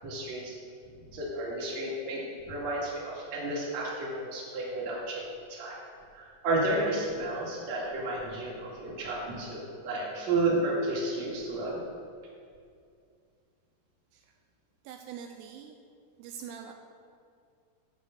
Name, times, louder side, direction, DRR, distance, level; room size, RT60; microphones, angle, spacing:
voice 1, 0.0-0.5 1.1-5.8 6.1-11.8, right 2 dB, 50° right, -4 dB, 2.7 m, -32 dB
voice 2, 14.8-15.7 16.2-16.7, right 8 dB, 85° right, 3 dB, 2.6 m, -43 dB
10.0 x 5.4 x 7.6 m, 2.3 s
omnidirectional pair, 4.9 m